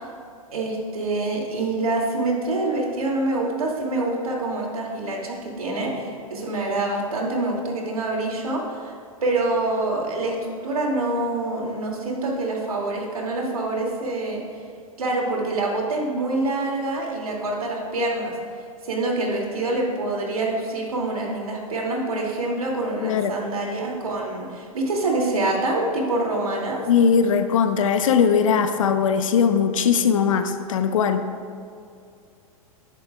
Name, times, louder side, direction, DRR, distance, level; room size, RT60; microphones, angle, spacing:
voice 1, 0.5-8.9 9.2-14.4 15.0-18.3 18.8-26.8, right 2 dB, 75° right, -1 dB, 2.8 m, -26 dB
voice 2, 23.0-23.4 26.9-31.2, left 6 dB, 60° left, 8 dB, 1.0 m, -20 dB
20.0 x 10.5 x 2.5 m, 2.4 s
figure-of-eight pair, 100°, 19 cm